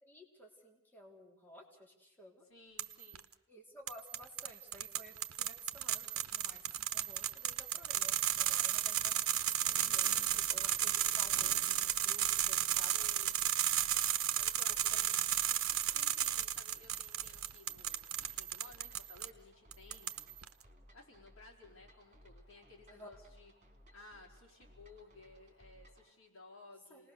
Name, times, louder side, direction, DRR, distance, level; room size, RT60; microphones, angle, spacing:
voice 1, 0.0-2.5 3.5-13.0 14.9-15.1 15.5-15.6 22.9-23.1 26.9-27.1, equal, 10° left, -1 dB, 3.4 m, -55 dB
voice 2, 2.5-3.3 12.9-13.4 14.4-15.2 15.9-20.1 20.9-23.5 23.9-27.1, left 3 dB, 70° left, 0 dB, 4.3 m, -58 dB
sound 1, 2.8-3.2 3.9-19.3 19.7-20.5, right 12 dB, 80° right, 1.0 m, -34 dB
sound 2, 6.4-11.8, right 1 dB, 10° right, 3.8 m, -64 dB
sound 3, 10.2-26.1, equal, 35° right, 4.0 m, -61 dB
28.0 x 20.0 x 6.8 m, 0.81 s
head